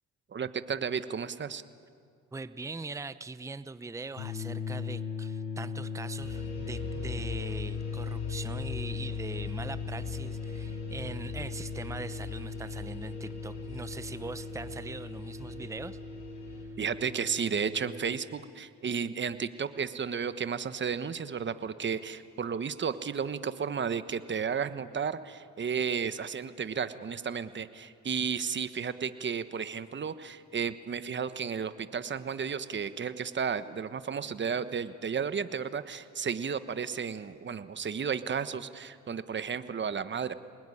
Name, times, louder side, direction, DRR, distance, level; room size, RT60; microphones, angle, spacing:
voice 1, 0.3-1.6 16.8-40.3, right 6 dB, 40° right, 12 dB, 1.2 m, -33 dB
voice 2, 2.3-16.0, right 3 dB, 10° right, 13 dB, 0.7 m, -41 dB
sound 1, 4.2-18.2, left 5 dB, 90° left, 4.2 m, -38 dB
sound 2, 6.2-16.6, left 4 dB, 65° left, 6.7 m, -43 dB
25.0 x 20.5 x 9.9 m, 2.3 s
cardioid pair, 90°, 30 cm